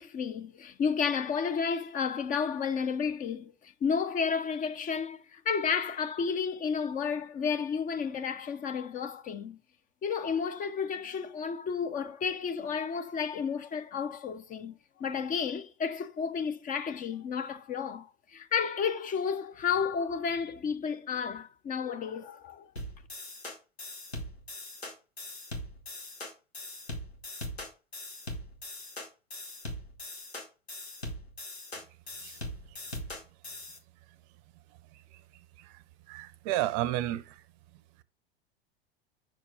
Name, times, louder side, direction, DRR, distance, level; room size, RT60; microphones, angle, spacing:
voice 1, 0.0-9.6 10.0-22.7, left 6 dB, 25° left, 0.8 m, -32 dB
sound 1, 22.8-33.8, left 1 dB, 85° left, 1.9 m, -41 dB
voice 2, 36.1-37.4, right 14 dB, 40° right, 0.6 m, -32 dB
6.2 x 4.5 x 6.3 m
figure-of-eight pair, 85°, 31 cm